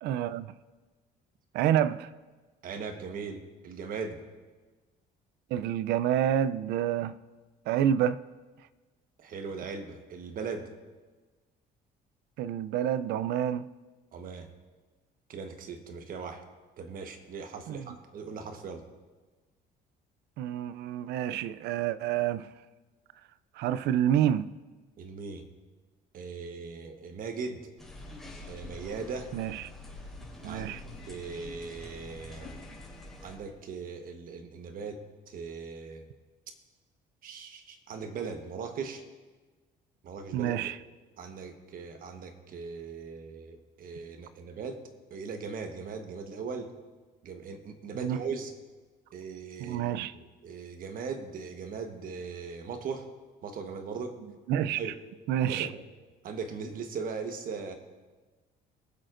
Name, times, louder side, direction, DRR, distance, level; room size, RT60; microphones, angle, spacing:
voice 1, 0.0-0.5 1.5-2.1 5.5-7.2 7.7-8.2 12.4-13.7 17.7-17.8 20.4-22.5 23.6-24.5 29.3-29.6 30.4-30.8 40.3-40.8 48.0-48.2 49.6-50.1 54.5-54.9 55.3-55.7, right 10 dB, 80° right, 0.4 m, -28 dB
voice 2, 2.6-4.2 9.2-10.7 14.1-14.5 15.3-16.4 16.8-18.8 25.0-25.5 26.1-27.7 28.5-29.3 30.4-30.7 31.0-32.5 33.2-36.1 37.2-39.0 40.0-40.9 41.2-44.8 45.1-46.7 47.2-48.5 49.1-49.8 50.1-53.1 53.4-54.2 54.7-55.0 55.5-55.8 56.2-57.7, right 5 dB, 55° right, 1.2 m, -39 dB
sound 1, 27.8-33.4, left 2 dB, ahead, 3.6 m, -45 dB
22.5 x 7.6 x 2.5 m
cardioid pair, 110°, 17 cm